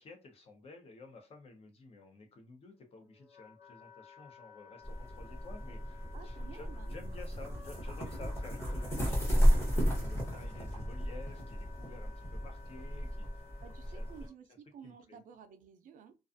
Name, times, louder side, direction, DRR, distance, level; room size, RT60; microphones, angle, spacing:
voice 1, 0.0-13.5 13.9-14.1 14.8-15.2, left 3 dB, 45° left, 0.7 m, -52 dB
Wind instrument woodwind instrument, 2.7-14.3, left 7 dB, 65° left, 1.2 m, -56 dB
sound 1, 4.8-14.2, equal, 20° left, 0.9 m, -33 dB
voice 2, 6.1-6.9 13.6-16.2, right 7 dB, 75° right, 0.4 m, -53 dB
2.4 x 2.3 x 2.5 m
wide cardioid pair, 160°, 14 cm